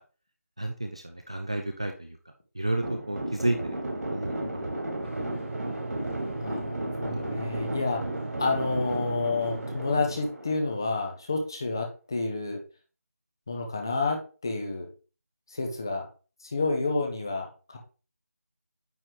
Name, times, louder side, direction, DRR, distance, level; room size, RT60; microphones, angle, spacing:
voice 1, 0.6-2.2 2.5-3.6 4.1-4.8 7.1-7.3, right 1 dB, 20° right, 4 dB, 0.4 m, -31 dB
sound 1, 2.8-11.1, right 1 dB, 80° right, 2.5 m, -34 dB
sound 2, 5.0-10.2, right 3 dB, 50° right, 1.3 m, -39 dB
voice 2, 6.4-8.0 8.4-12.6 13.5-14.2 14.4-14.9 15.5-16.1 16.4-17.8, left 3 dB, 15° left, 3 dB, 0.6 m, -29 dB
9.0 x 3.8 x 3.1 m, 0.35 s
figure-of-eight pair, 175°, 9 cm